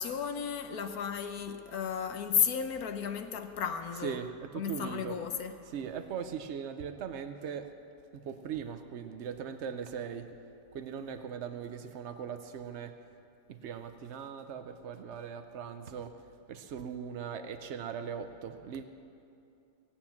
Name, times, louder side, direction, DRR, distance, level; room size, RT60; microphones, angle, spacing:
voice 1, 0.0-4.2 4.6-5.5, left 7 dB, 65° left, 1.1 m, -33 dB
voice 2, 4.0-5.2 5.7-7.7 8.1-10.4 10.7-12.9 13.5-16.1 16.5-18.8, right 7 dB, 85° right, 0.6 m, -39 dB
18.0 x 8.8 x 7.2 m
omnidirectional pair, 2.0 m